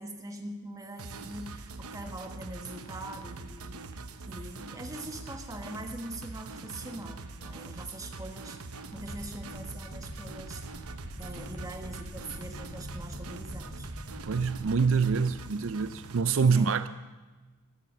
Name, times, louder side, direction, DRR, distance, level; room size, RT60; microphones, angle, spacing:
voice 1, 0.0-10.9 11.2-13.9 16.4-16.8, right 1 dB, 15° right, 1.3 m, -42 dB
sound 1, 1.0-16.2, right 3 dB, 90° right, 1.0 m, -43 dB
sound 2, 8.9-14.6, equal, 20° left, 3.3 m, -44 dB
voice 2, 14.2-16.9, right 5 dB, 65° right, 0.5 m, -26 dB
14.0 x 13.5 x 7.2 m
head